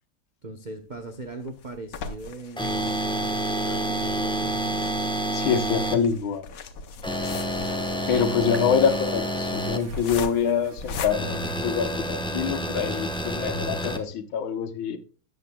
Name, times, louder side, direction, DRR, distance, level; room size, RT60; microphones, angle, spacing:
voice 1, 0.4-4.8, right 2 dB, 75° right, 0.4 m, -40 dB
sound 1, 0.9-12.3 12.8-12.9 13.2-13.3 13.7-13.9, left 4 dB, 55° left, 1.0 m, -39 dB
sound 2, 2.6-5.9 7.0-9.8 11.1-14.0, right 1 dB, 5° left, 0.4 m, -28 dB
voice 2, 5.3-6.4 8.1-15.0, left 7 dB, 75° left, 1.8 m, -25 dB
sound 3, 7.3-13.4, right 4 dB, 45° right, 1.1 m, -45 dB
13.0 x 8.1 x 2.2 m
omnidirectional pair, 2.2 m